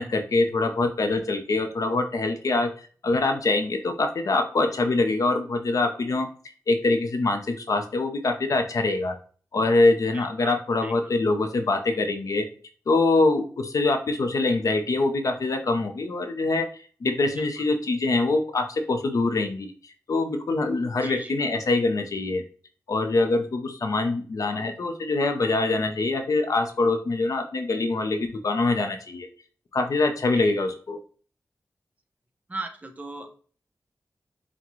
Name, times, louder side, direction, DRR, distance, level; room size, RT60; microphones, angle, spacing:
voice 1, 0.0-2.7 3.0-6.3 6.7-9.1 9.5-12.5 12.9-22.4 22.9-29.3 29.7-31.0, left 3 dB, 65° left, 6 dB, 0.6 m, -24 dB
voice 2, 10.1-10.5 10.8-10.9 17.4-17.5 21.0-21.4 24.5-24.7 30.3-30.5 32.5-33.3, right 2 dB, 25° right, 5 dB, 0.6 m, -37 dB
5.9 x 2.2 x 3.0 m, 0.42 s
wide cardioid pair, 120°, 6 cm